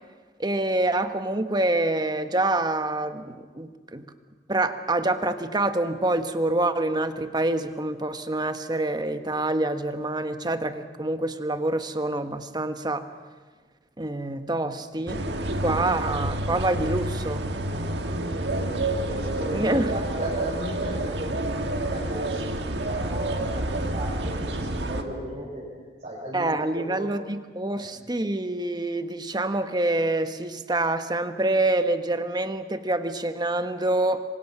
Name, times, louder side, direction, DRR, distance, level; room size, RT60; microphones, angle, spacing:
voice 1, 0.4-4.0 4.5-13.1 14.0-15.2 15.6-17.5 19.5-19.9 26.3-34.2, right 2 dB, 25° right, 9 dB, 1.2 m, -26 dB
sound 1, 15.1-25.0, right 1 dB, 75° right, 1.7 m, -29 dB
voice 2, 17.7-27.1 27.7-27.9, equal, 45° right, -7 dB, 5.6 m, -36 dB
28.0 x 24.0 x 6.0 m, 1.4 s
head